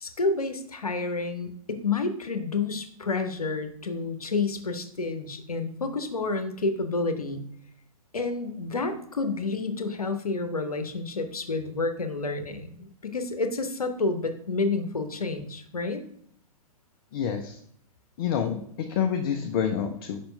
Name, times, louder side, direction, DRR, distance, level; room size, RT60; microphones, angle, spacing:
voice 1, 0.0-7.4 8.1-16.0, left 3 dB, 75° left, 7 dB, 0.9 m, -29 dB
voice 2, 17.1-17.6 18.2-20.2, left 8 dB, 40° left, 4 dB, 0.6 m, -28 dB
5.4 x 4.4 x 5.2 m, 0.66 s
figure-of-eight pair, 110°, 19 cm